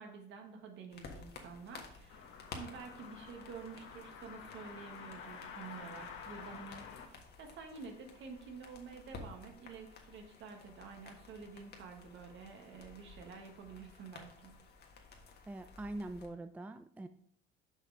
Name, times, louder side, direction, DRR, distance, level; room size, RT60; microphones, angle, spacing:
voice 1, 0.0-2.2 2.5-14.6, right 5 dB, 60° right, 3 dB, 1.7 m, -49 dB
sound 1, 0.9-16.3, left 4 dB, 50° left, 1.5 m, -54 dB
sound 2, 2.1-7.1, left 6 dB, 65° left, 1.3 m, -50 dB
voice 2, 15.5-17.1, right 2 dB, 5° right, 9 dB, 0.4 m, -43 dB
6.4 x 5.5 x 4.9 m, 0.64 s
supercardioid pair, 95°, 21 cm